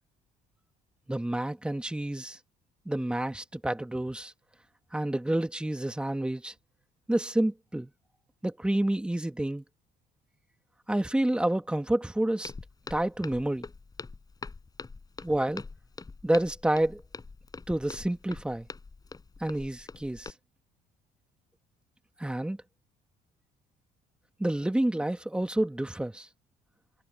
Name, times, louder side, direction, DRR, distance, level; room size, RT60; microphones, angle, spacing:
voice 1, 1.1-2.4 2.9-4.3 4.9-6.5 7.1-7.9 8.4-9.6 10.9-12.5 12.9-13.7 15.2-15.6 16.2-17.0 17.7-18.7 19.4-20.3 22.2-22.6 24.4-26.3, right 1 dB, 5° right, 2.1 m, -29 dB
Walk footsteps, 12.4-20.3, left 4 dB, 20° left, 5.3 m, -44 dB
cardioid pair, 110°, 17 cm